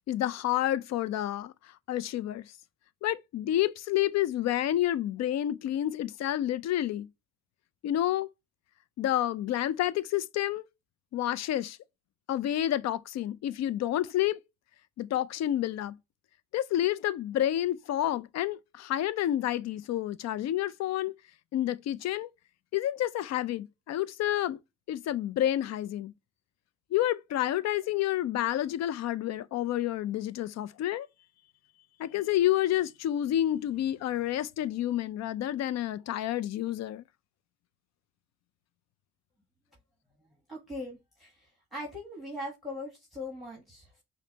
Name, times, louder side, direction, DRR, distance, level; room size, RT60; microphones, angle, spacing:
voice 1, 0.0-1.5 1.9-2.5 3.0-7.1 7.8-8.3 9.0-10.6 11.1-11.8 12.3-14.4 15.0-16.0 16.5-21.1 21.5-22.3 22.7-24.6 24.9-26.1 26.9-31.1 32.0-37.0, left 12 dB, 60° left, 0.4 m, -29 dB
voice 2, 40.5-44.0, left 1 dB, ahead, 1.2 m, -40 dB
5.2 x 2.1 x 2.7 m
cardioid pair, 90°, 30 cm